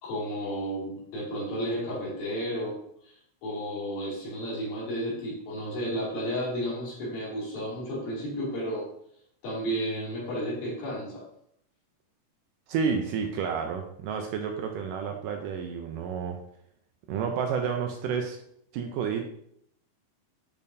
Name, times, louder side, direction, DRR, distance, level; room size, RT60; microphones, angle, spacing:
voice 1, 0.0-8.9 9.4-11.2, equal, 75° left, -7 dB, 4.4 m, -32 dB
voice 2, 12.7-16.4 17.1-18.4 18.7-19.2, right 6 dB, 80° right, 4 dB, 2.0 m, -30 dB
8.5 x 5.4 x 2.7 m, 0.70 s
omnidirectional pair, 4.2 m